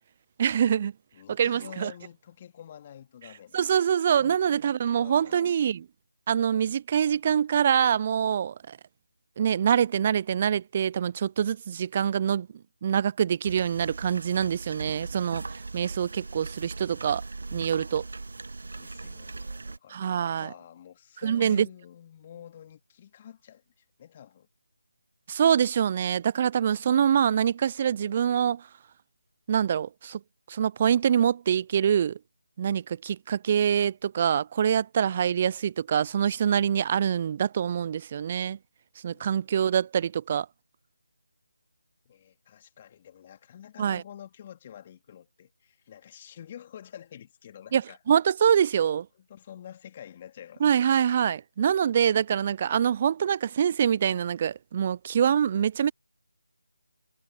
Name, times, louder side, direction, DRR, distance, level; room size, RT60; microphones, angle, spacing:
voice 1, 0.4-0.9 1.4-1.9 3.5-5.8 6.3-8.8 9.4-12.5 12.8-17.2 17.5-18.0 19.9-20.5 21.2-21.7 25.3-28.6 29.5-30.2 30.5-32.2 32.6-38.6 39.0-40.5 43.8-44.0 47.7-47.8 48.1-49.1 50.6-55.9, right 8 dB, 30° right, 0.3 m, -25 dB
voice 2, 1.1-3.6 4.1-4.4 4.9-5.5 18.7-24.5 39.1-39.4 42.1-48.0 49.2-51.0, left 10 dB, 25° left, 2.2 m, -48 dB
sound 1, 13.4-19.8, right 3 dB, 60° right, 1.9 m, -39 dB
figure-of-eight pair, 160°, 0 cm